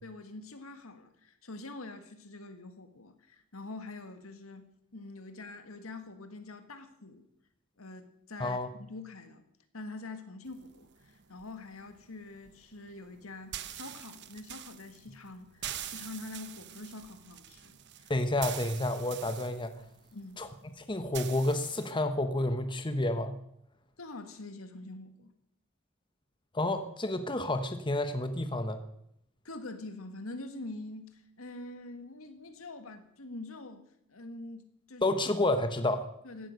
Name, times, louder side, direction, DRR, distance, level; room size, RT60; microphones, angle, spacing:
voice 1, 0.0-7.3 7.8-9.5 9.7-18.1 20.1-20.4 24.0-25.3 29.4-35.1 36.2-36.5, left 2 dB, 80° left, 8 dB, 1.8 m, -45 dB
sound 1, 10.5-21.9, right 11 dB, 55° right, 1.0 m, -45 dB
voice 2, 18.1-19.7 20.4-20.5 20.9-23.4 26.5-28.8 35.0-36.1, left 1 dB, 25° left, 8 dB, 1.1 m, -30 dB
16.5 x 12.5 x 6.5 m, 0.75 s
head